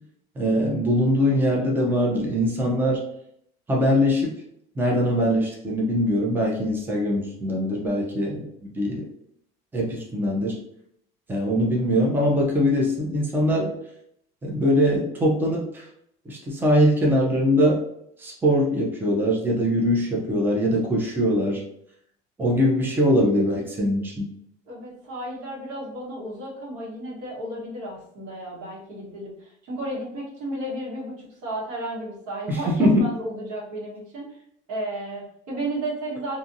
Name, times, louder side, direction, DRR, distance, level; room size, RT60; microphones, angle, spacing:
voice 1, 0.4-3.0 3.7-4.3 4.8-8.5 8.7-9.1 9.7-10.6 11.3-13.7 14.4-15.9 16.3-17.8 18.2-21.6 22.4-24.3 32.5-33.0, equal, 10° right, -2 dB, 0.6 m, -22 dB
voice 2, 24.7-31.1 31.4-34.4 34.7-36.4, right 1 dB, 80° right, -4 dB, 1.3 m, -33 dB
2.6 x 2.6 x 2.6 m, 0.74 s
cardioid pair, 135°, 18 cm